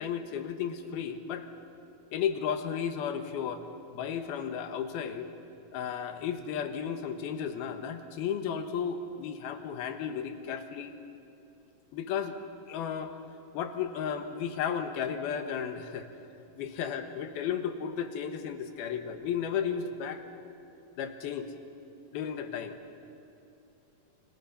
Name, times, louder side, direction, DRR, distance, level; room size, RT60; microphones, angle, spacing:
voice 1, 0.0-1.5 2.1-3.6 3.9-5.3 5.7-10.9 11.9-12.4 12.7-13.1 13.5-16.1 16.5-20.2 21.0-21.5 22.1-22.8, left 7 dB, 85° left, 7 dB, 3.2 m, -34 dB
29.5 x 25.0 x 5.8 m, 2.8 s
omnidirectional pair, 4.3 m